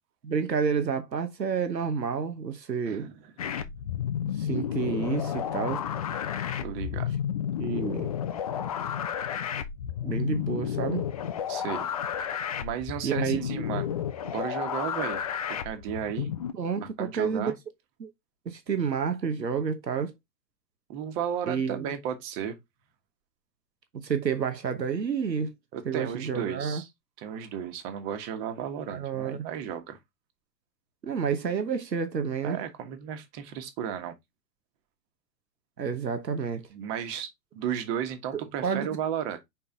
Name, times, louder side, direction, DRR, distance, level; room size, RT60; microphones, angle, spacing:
voice 1, 0.2-3.1 4.4-5.8 7.6-8.1 10.0-11.1 13.0-13.6 16.5-17.5 18.0-18.1 18.5-20.1 21.5-21.9 23.9-25.5 25.8-26.8 28.9-29.4 31.0-32.6 35.8-36.7 38.3-38.9, right 6 dB, 85° right, 1.0 m, -29 dB
voice 2, 2.9-3.2 6.6-7.1 11.5-11.9 12.6-15.2 15.6-16.3 16.8-17.5 20.9-22.6 25.7-26.9 27.2-30.0 32.4-34.1 36.7-39.4, right 9 dB, 35° right, 1.5 m, -34 dB
sound 1, 3.4-16.5, left 9 dB, 25° left, 0.3 m, -31 dB
5.3 x 4.6 x 3.8 m
figure-of-eight pair, 100°, 49 cm